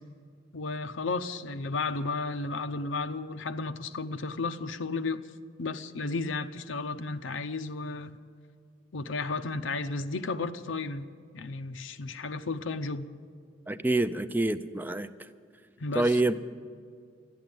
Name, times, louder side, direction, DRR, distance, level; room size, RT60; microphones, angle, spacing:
voice 1, 0.5-5.2 5.6-8.2 8.9-11.1 11.3-13.1 15.8-16.2, left 3 dB, 75° left, 0.7 m, -33 dB
voice 2, 13.7-15.1 16.0-16.3, right 2 dB, 10° right, 0.4 m, -26 dB
13.5 x 11.0 x 9.3 m
head